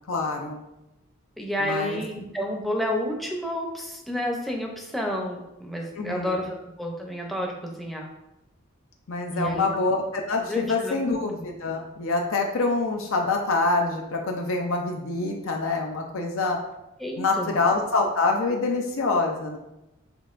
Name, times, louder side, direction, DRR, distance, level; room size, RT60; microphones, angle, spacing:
voice 1, 0.1-0.6 1.6-2.0 6.0-6.4 9.1-16.6 17.2-19.6, left 3 dB, 65° left, 2 dB, 0.5 m, -26 dB
voice 2, 1.4-8.0 9.3-9.7 10.5-11.2 17.0-17.5, equal, ahead, 0 dB, 0.6 m, -30 dB
6.1 x 3.3 x 2.5 m, 0.91 s
head